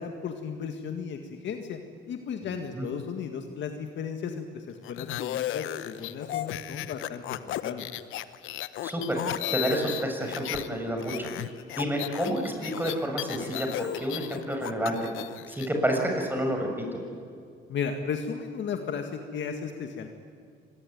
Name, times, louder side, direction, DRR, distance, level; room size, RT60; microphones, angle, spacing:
voice 1, 0.0-1.8 2.1-7.9 17.7-20.1, left 6 dB, 70° left, 5 dB, 1.9 m, -35 dB
voice 2, 2.4-2.9 8.8-9.2 9.5-11.3 11.7-14.9 15.5-16.9, right 1 dB, 10° right, 2 dB, 7.0 m, -29 dB
sound 1, 4.8-10.7 11.0-15.7, left 13 dB, 90° left, 1.0 m, -35 dB
24.5 x 21.0 x 9.4 m, 2.3 s
cardioid pair, 90°, 20 cm